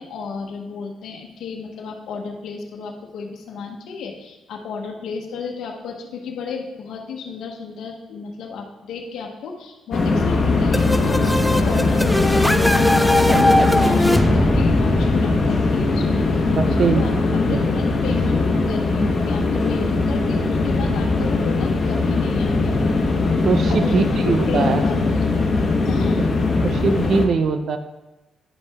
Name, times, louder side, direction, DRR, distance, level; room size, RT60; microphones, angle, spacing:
voice 1, 0.0-12.7 13.1-16.2 16.7-17.1 17.5-22.8 23.7-24.2 24.5-25.2 25.6-26.4, left 5 dB, 75° left, 1 dB, 1.1 m, -33 dB
sound 1, 9.9-27.3, left 3 dB, 40° left, 1.3 m, -20 dB
sound 2, 10.7-16.4, left 1 dB, ahead, 0.5 m, -21 dB
voice 2, 13.3-13.6 16.6-17.2 17.5-17.6 23.4-24.8 26.6-27.8, right 5 dB, 55° right, 9 dB, 0.7 m, -21 dB
9.5 x 5.4 x 3.6 m, 1.0 s
cardioid pair, 90°, 0 cm